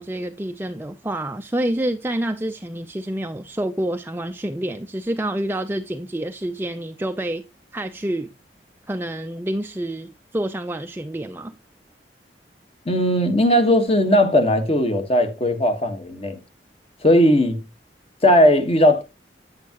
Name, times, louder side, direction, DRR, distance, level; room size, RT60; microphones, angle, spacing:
voice 1, 0.0-7.4 7.7-8.3 8.9-11.6, right 1 dB, 10° right, 0.5 m, -28 dB
voice 2, 12.8-16.4 17.0-17.6 18.2-19.0, equal, 35° left, 1.5 m, -17 dB
9.4 x 8.3 x 3.0 m
head